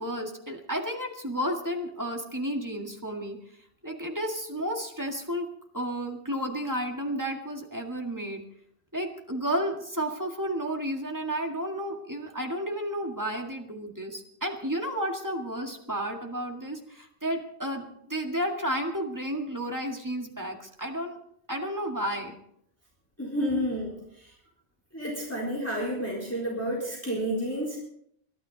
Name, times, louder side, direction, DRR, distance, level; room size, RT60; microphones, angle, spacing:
voice 1, 0.0-3.4 3.8-5.5 5.7-8.4 8.9-21.2 21.5-22.4, equal, 15° right, 2 dB, 1.9 m, -32 dB
voice 2, 23.2-24.3 24.9-27.8, equal, 15° left, -4 dB, 4.2 m, -30 dB
23.0 x 12.0 x 4.0 m, 0.72 s
omnidirectional pair, 1.1 m